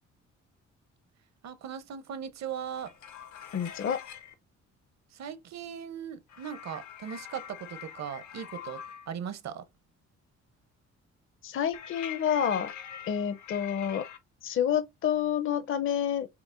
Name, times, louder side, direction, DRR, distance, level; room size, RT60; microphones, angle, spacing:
voice 1, 1.4-2.9 5.1-9.6, right 8 dB, 60° right, 0.7 m, -39 dB
sound 1, 2.7-4.3 6.3-9.1 11.7-14.2, left 9 dB, 70° left, 0.8 m, -44 dB
voice 2, 3.5-4.0 11.4-12.7 13.1-14.1 14.4-16.3, left 9 dB, 45° left, 0.6 m, -28 dB
5.8 x 2.1 x 2.4 m
cardioid pair, 90°, 30 cm